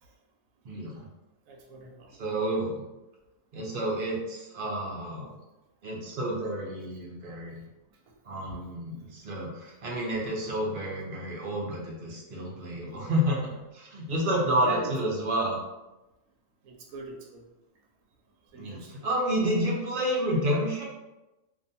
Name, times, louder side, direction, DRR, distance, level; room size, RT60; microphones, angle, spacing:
voice 1, 0.6-1.1 2.2-2.8 3.5-5.3 5.8-7.6 8.2-15.6 18.6-20.8, equal, 55° right, -3 dB, 0.6 m, -30 dB
voice 2, 1.5-2.1 14.6-14.9 16.6-17.4 18.5-19.0, right 2 dB, 80° right, 0 dB, 1.0 m, -42 dB
2.5 x 2.2 x 2.6 m, 1.0 s
omnidirectional pair, 1.4 m